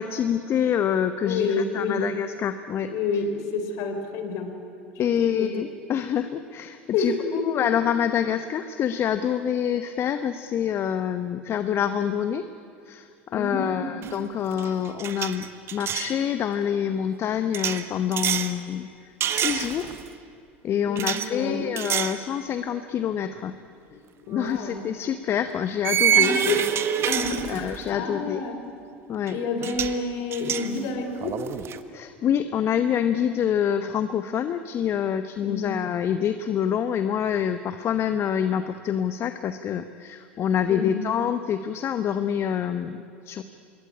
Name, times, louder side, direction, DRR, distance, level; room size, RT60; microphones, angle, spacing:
voice 1, 0.0-2.9 5.0-7.1 7.4-12.4 12.9-18.9 19.3-19.9 20.6-23.5 24.3-26.4 27.5-28.4 29.1-29.4 31.9-43.4, left 9 dB, 40° left, 10 dB, 1.0 m, -26 dB
voice 2, 1.2-2.0 2.9-4.6 5.0-5.5 6.9-7.4 13.3-14.0 20.9-21.7 23.9-24.8 26.1-26.7 27.0-28.6 29.3-31.4 35.4-35.7 40.7-41.1, left 4 dB, 55° left, 7 dB, 4.0 m, -29 dB
sound 1, 14.0-14.3 14.5-16.1 17.5-18.5 19.2-20.1 21.0-21.3 21.8-22.2 22.7-22.8 24.4-24.5 25.8-27.9 29.3-29.4 29.6-30.0 30.3-31.8, right 9 dB, 40° right, 1.5 m, -27 dB
26.0 x 21.5 x 9.9 m, 2.4 s
hypercardioid pair, 75°, 6 cm